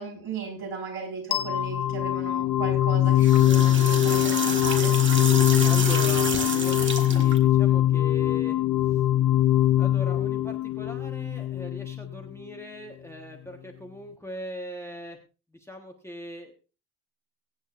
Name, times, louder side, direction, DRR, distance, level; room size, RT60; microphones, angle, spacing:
voice 1, 0.0-5.0, right 5 dB, 55° right, 0 dB, 5.4 m, -36 dB
sound 1, 1.3-12.2, left 13 dB, 40° left, 0.6 m, -22 dB
sound 2, 3.0-7.4, right 4 dB, 25° right, 1.6 m, -30 dB
voice 2, 5.6-8.6 8.9-9.0 9.7-15.2 15.5-16.5, equal, 5° left, 2 dB, 1.2 m, -40 dB
23.0 x 8.9 x 2.5 m, 0.33 s
cardioid pair, 165°, 48 cm